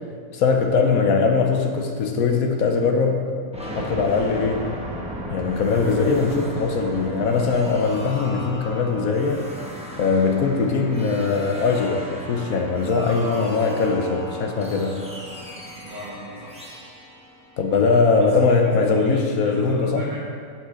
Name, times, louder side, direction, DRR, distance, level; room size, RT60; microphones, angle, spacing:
voice 1, 0.3-3.2 3.7-4.7 5.3-9.5 10.0-15.0 17.6-20.0, left 4 dB, 75° left, 3 dB, 1.2 m, -21 dB
sound 1, 3.5-18.2, equal, 5° right, 0.9 m, -36 dB
voice 2, 15.8-16.7 18.2-18.3 18.6-20.2, equal, 55° right, -5 dB, 2.2 m, -36 dB
10.5 x 5.8 x 3.8 m, 2.2 s
omnidirectional pair, 1.5 m